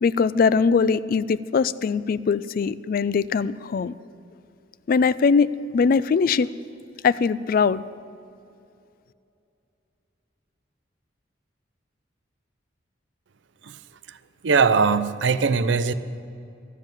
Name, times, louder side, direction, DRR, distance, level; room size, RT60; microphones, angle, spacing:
voice 1, 0.0-3.9 4.9-5.5 5.7-6.5 7.0-7.8, left 5 dB, 50° left, 17 dB, 0.3 m, -21 dB
voice 2, 14.4-15.9, right 5 dB, 70° right, 13 dB, 0.5 m, -20 dB
13.0 x 7.6 x 9.0 m, 2.6 s
head